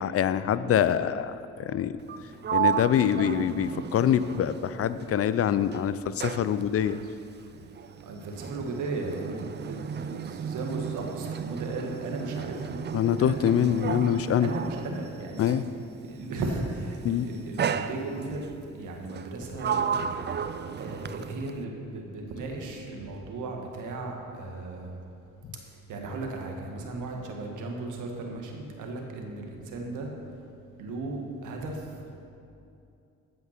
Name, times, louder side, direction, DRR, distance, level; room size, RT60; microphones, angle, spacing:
voice 1, 0.0-1.9 2.5-7.0 12.9-14.5 15.4-15.6 17.0-17.3, left 9 dB, 50° left, 14 dB, 0.5 m, -25 dB
Sliding door, 2.0-5.3 5.6-15.8 16.6-17.0 17.6-18.5 19.1-21.6, right 7 dB, 35° right, 0.5 m, -33 dB
voice 2, 8.1-12.8 13.2-13.9 14.4-15.5 16.0-18.4 18.8-19.8 20.8-24.9 25.9-30.1 30.8-31.7, right 2 dB, 80° right, 1 dB, 1.7 m, -36 dB
15.5 x 5.9 x 5.9 m, 2.6 s
cardioid pair, 90°, 30 cm